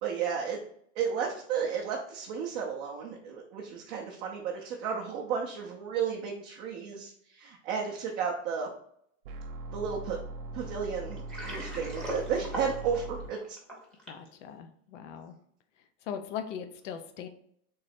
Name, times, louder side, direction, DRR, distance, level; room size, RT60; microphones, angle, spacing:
voice 1, 0.0-0.6 1.0-8.7 9.7-10.2 10.5-13.6, right 6 dB, 25° right, -2 dB, 0.4 m, -33 dB
sound 1, 9.2-13.3, right 2 dB, 60° right, 0.8 m, -40 dB
Water, 11.1-14.3, equal, 5° left, 0.7 m, -39 dB
voice 2, 14.1-15.4 16.0-17.3, left 8 dB, 85° left, 7 dB, 0.7 m, -39 dB
3.9 x 3.1 x 4.2 m, 0.68 s
supercardioid pair, 170°, 36 cm